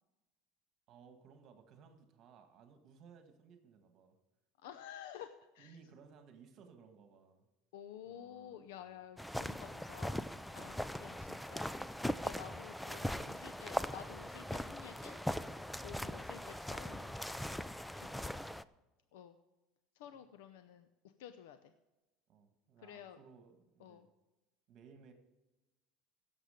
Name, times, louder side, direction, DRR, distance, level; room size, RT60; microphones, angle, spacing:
voice 1, 0.9-4.2 5.6-7.5 8.0-9.0 17.9-18.6 20.1-20.2 22.3-24.1 24.7-25.1, right 6 dB, 45° right, 6 dB, 1.7 m, -60 dB
voice 2, 4.6-5.8 7.7-11.7 12.2-15.2 15.8-17.1 18.0-18.3 19.1-19.4 20.0-20.9 21.2-21.7 22.8-23.2 23.8-24.1, left 10 dB, 90° left, 10 dB, 0.6 m, -52 dB
sound 1, 9.2-18.6, left 1 dB, 5° left, 0.3 m, -40 dB
17.0 x 7.3 x 5.1 m, 1.1 s
cardioid pair, 140°, 0 cm